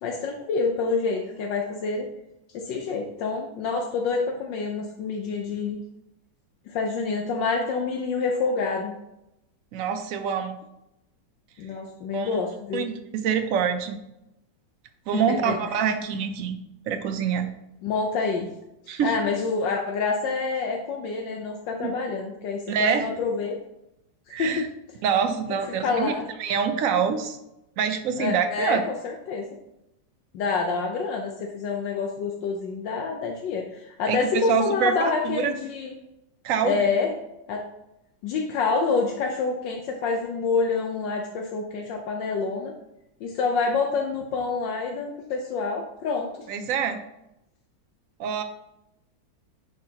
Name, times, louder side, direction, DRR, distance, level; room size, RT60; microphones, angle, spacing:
voice 1, 0.0-2.1 2.5-5.8 6.7-8.9 11.6-12.9 15.1-15.6 15.8-15.9 17.8-18.5 19.0-23.6 24.4-24.7 25.8-26.3 28.2-28.8 29.0-29.5 30.3-35.9 36.6-37.1 37.5-37.6 38.2-42.7 43.2-46.7, left 4 dB, 75° left, 2 dB, 1.4 m, -27 dB
voice 2, 9.7-10.6 12.1-12.4 12.7-14.0 15.1-16.6 16.9-17.5 18.9-19.2 21.8-21.9 22.7-23.1 24.3-24.7 25.0-26.1 26.4-27.4 27.8-28.8 34.1-35.5 36.4-36.9 46.5-47.0 48.2-48.4, right 7 dB, 70° right, 7 dB, 0.7 m, -25 dB
9.5 x 4.4 x 2.8 m, 0.87 s
omnidirectional pair, 2.1 m